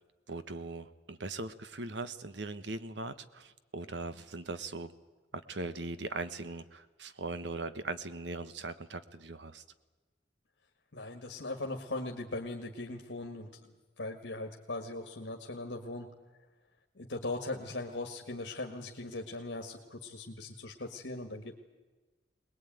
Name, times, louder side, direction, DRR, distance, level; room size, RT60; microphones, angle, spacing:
voice 1, 0.3-4.9 5.3-9.6, right 3 dB, 80° right, 12 dB, 1.2 m, -40 dB
voice 2, 10.9-13.7 14.0-16.1 17.0-21.6, left 2 dB, 80° left, 2 dB, 1.9 m, -39 dB
22.5 x 20.0 x 9.2 m, 1.2 s
head